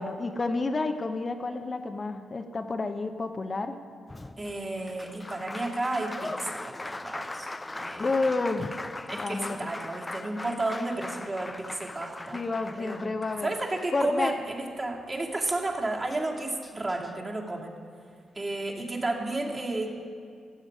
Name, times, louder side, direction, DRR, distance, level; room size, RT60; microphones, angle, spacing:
voice 1, 0.0-3.8 8.0-8.8 9.1-9.7 12.3-13.5 13.9-14.3, left 3 dB, 40° left, 6 dB, 0.8 m, -30 dB
Applause, 4.1-14.3 15.7-15.8 16.1-17.1, left 2 dB, 20° left, 0.4 m, -40 dB
voice 2, 4.4-7.5 7.7-8.1 9.1-12.4 12.8-13.2 13.4-17.8 18.3-20.1, right 2 dB, 35° right, -1 dB, 2.1 m, -32 dB
16.0 x 7.5 x 5.1 m, 2.3 s
hypercardioid pair, 40°, 0 cm